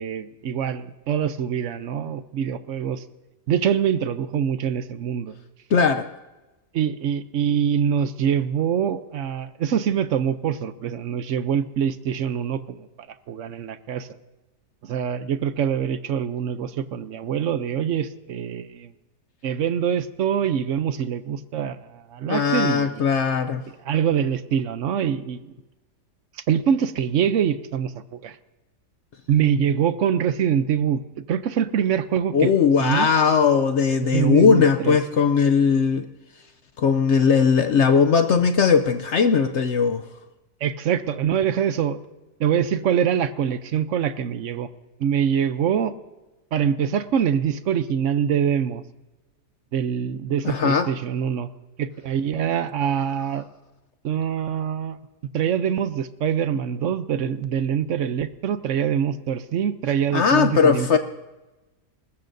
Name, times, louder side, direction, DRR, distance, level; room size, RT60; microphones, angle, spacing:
voice 1, 0.0-3.0 3.5-5.3 6.7-12.9 13.3-14.1 14.9-18.9 19.4-22.9 23.8-25.5 26.5-27.9 28.2-28.3 29.3-31.0 31.3-32.5 32.8-33.1 34.1-35.0 40.6-42.0 42.4-44.7 45.0-45.9 46.5-48.8 49.7-51.5 51.8-53.4 54.0-55.0 55.3-61.0, right 8 dB, 60° right, 12 dB, 0.8 m, -24 dB
voice 2, 5.7-6.1 22.3-23.6 32.3-36.1 36.8-40.0 50.4-50.9 60.1-61.0, left 6 dB, 65° left, 9 dB, 0.7 m, -19 dB
21.0 x 20.0 x 2.6 m, 1.1 s
omnidirectional pair, 1.8 m